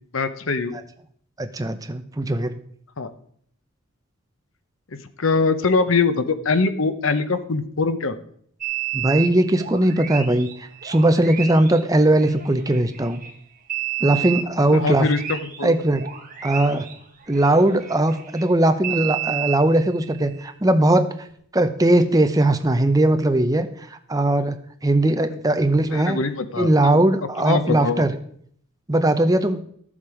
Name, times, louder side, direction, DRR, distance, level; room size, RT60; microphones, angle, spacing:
voice 1, 0.1-0.8 3.0-3.1 5.2-8.2 14.7-15.2 15.6-15.7 25.9-27.0 27.4-28.1, left 4 dB, 75° left, 10 dB, 0.9 m, -22 dB
voice 2, 1.4-2.5 8.9-10.5 10.8-13.2 14.0-15.1 15.6-16.0 16.4-16.9 17.3-21.3 21.5-23.7 24.1-24.6 24.8-26.2 26.6-28.1 28.9-29.6, right 1 dB, 15° right, 9 dB, 0.7 m, -19 dB
sound 1, 8.6-13.3 13.7-18.5 18.8-20.5 21.3-21.4, right 11 dB, 40° right, 1.4 m, -32 dB
12.5 x 7.3 x 4.9 m, 0.63 s
head